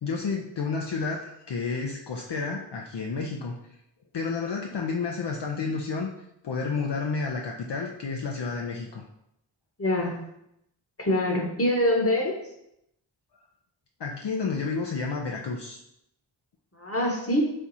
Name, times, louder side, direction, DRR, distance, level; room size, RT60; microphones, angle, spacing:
voice 1, 0.0-3.6 4.1-6.1 6.4-9.0 14.0-15.8, left 4 dB, 55° left, 0 dB, 0.6 m, -30 dB
voice 2, 9.8-10.2 11.0-12.4 16.8-17.5, left 1 dB, 30° left, 0 dB, 1.1 m, -24 dB
4.4 x 2.3 x 4.1 m, 0.78 s
cardioid pair, 40°, 49 cm